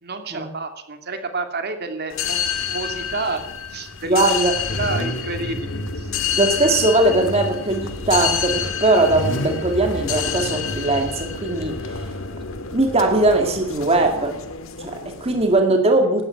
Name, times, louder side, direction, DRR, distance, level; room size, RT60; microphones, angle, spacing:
voice 1, 0.0-3.4 3.7-4.4 4.8-6.2, right 3 dB, 55° right, 6 dB, 2.6 m, -30 dB
sound 1, 2.1-15.6, left 7 dB, 80° left, 1.7 m, -29 dB
Car / Idling / Accelerating revving vroom, 2.5-14.5, left 1 dB, 65° left, 1.9 m, -33 dB
voice 2, 4.1-4.5 6.4-12.1 12.7-14.4 14.8-16.3, right 2 dB, 30° right, 3 dB, 2.1 m, -20 dB
17.5 x 13.5 x 5.9 m, 0.71 s
head